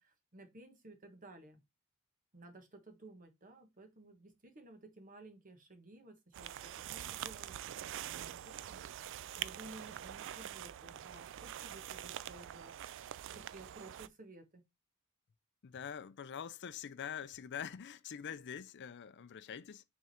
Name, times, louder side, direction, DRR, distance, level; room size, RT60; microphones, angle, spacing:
voice 1, 0.0-1.6 2.3-8.8 9.0-13.0 13.3-14.6, right 2 dB, 40° right, 1.4 m, -56 dB
sound 1, 6.3-14.1, right 11 dB, 60° right, 0.3 m, -45 dB
voice 2, 15.6-19.8, left 8 dB, 55° left, 0.5 m, -45 dB
6.2 x 3.7 x 4.3 m
head